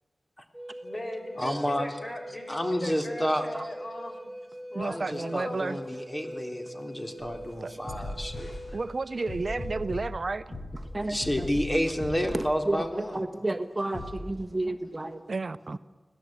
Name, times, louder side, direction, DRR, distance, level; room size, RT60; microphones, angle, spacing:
Wind instrument woodwind instrument, 0.5-9.8, equal, ahead, 4.9 m, -42 dB
voice 1, 0.8-1.5 1.8-2.5 2.8-4.3 4.7-5.9, left 1 dB, 40° left, 5 dB, 4.5 m, -39 dB
voice 2, 1.4-1.8 2.5-3.4 4.8-8.8 11.0-13.2, equal, 25° left, 4 dB, 3.1 m, -30 dB
voice 3, 4.7-5.8 7.6-7.8 8.7-10.6 15.3-15.8, right 3 dB, 60° right, 13 dB, 0.6 m, -32 dB
sound 1, 7.2-12.8 13.9-14.2, left 1 dB, 65° left, 5.9 m, -39 dB
voice 4, 13.1-15.2, right 2 dB, 30° right, 7 dB, 1.3 m, -30 dB
25.0 x 17.5 x 8.7 m, 1.4 s
wide cardioid pair, 65°, 0 cm